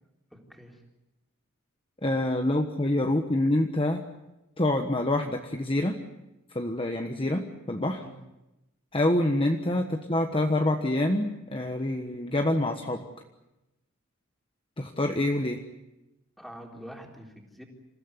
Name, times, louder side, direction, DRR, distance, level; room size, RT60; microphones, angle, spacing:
voice 1, 0.3-0.9 8.0-8.2 16.4-17.6, equal, ahead, 1 dB, 3.8 m, -46 dB
voice 2, 2.0-4.0 4.6-6.0 6.5-8.0 8.9-13.1 14.8-15.6, left 1 dB, 25° left, 4 dB, 1.3 m, -26 dB
27.5 x 16.0 x 9.9 m, 0.96 s
head